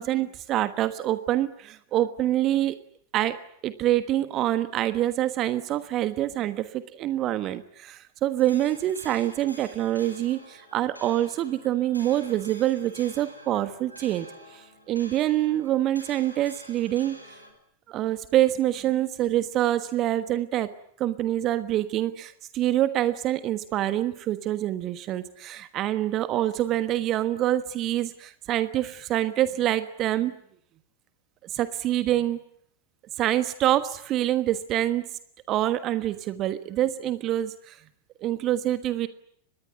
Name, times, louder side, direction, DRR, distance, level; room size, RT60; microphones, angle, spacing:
voice 1, 0.0-2.8 3.1-3.4 3.6-14.3 14.5-17.2 17.9-20.7 21.0-30.3 31.5-32.4 33.2-35.0 35.5-37.8 38.2-39.1, right 13 dB, 35° right, 12 dB, 1.3 m, -26 dB
sound 1, 8.4-17.5, equal, 90° left, 5.2 m, -48 dB
24.5 x 21.0 x 9.5 m, 0.69 s
figure-of-eight pair, 90°, 0 cm